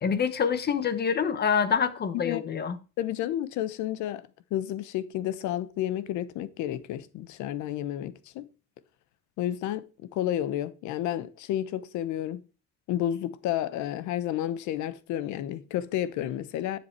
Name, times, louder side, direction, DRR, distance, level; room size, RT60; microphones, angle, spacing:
voice 1, 0.0-2.8, left 7 dB, 35° left, 1.0 m, -26 dB
voice 2, 3.0-4.2 4.5-8.5 9.4-12.4 12.9-16.8, left 12 dB, 75° left, 1.0 m, -31 dB
10.5 x 7.2 x 4.5 m
cardioid pair, 145°, 30 cm